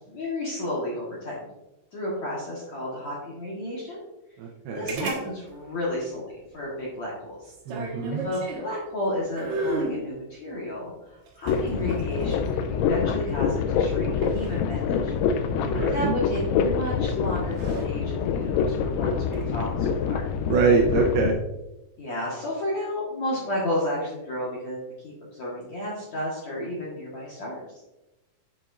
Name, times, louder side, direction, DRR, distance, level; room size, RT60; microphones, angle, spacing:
voice 1, 0.1-1.4 1.9-4.0 4.7-6.2 6.5-15.1 15.4-20.3 22.0-27.6, left 1 dB, 60° left, -6 dB, 1.9 m, -32 dB
voice 2, 4.4-5.1 7.7-8.2 15.6-16.1 20.5-21.4, right 4 dB, 80° right, 0 dB, 2.3 m, -24 dB
sound 1, 4.9-5.2 5.5-5.6 7.4-8.7 9.4-10.0 11.3-12.5 14.2-14.6 16.5-16.8 17.4-17.9 19.2-19.5, right 2 dB, 65° right, 1.9 m, -32 dB
sound 2, 11.5-21.3, left 6 dB, 90° left, 3.0 m, -26 dB
8.6 x 7.2 x 2.5 m, 0.97 s
omnidirectional pair, 5.3 m